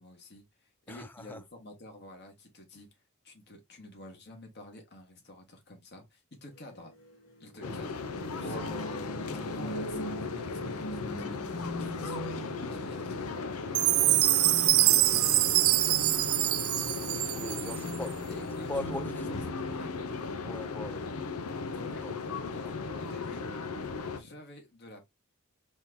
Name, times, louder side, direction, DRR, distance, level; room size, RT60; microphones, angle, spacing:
voice 1, 0.0-2.9 3.2-6.9 7.4-7.9 8.4-8.9 9.3-16.1 17.6-17.9 18.3-20.0 21.7-22.1 22.5-23.5 24.1-25.0, left 1 dB, 50° left, 1.6 m, -49 dB
voice 2, 0.9-1.4 7.6-7.8 8.3-8.8 9.3-9.4 13.9-14.2 17.3-18.1 18.7-19.3 20.3-21.1 22.0-22.1 22.5-22.8, left 1 dB, 10° left, 0.5 m, -41 dB
sound 1, 6.5-21.9, equal, 65° left, 2.2 m, -43 dB
sound 2, 7.6-24.2, left 4 dB, 85° left, 0.7 m, -37 dB
Chime, 13.7-18.0, right 18 dB, 70° right, 0.3 m, -24 dB
4.4 x 3.7 x 2.7 m
head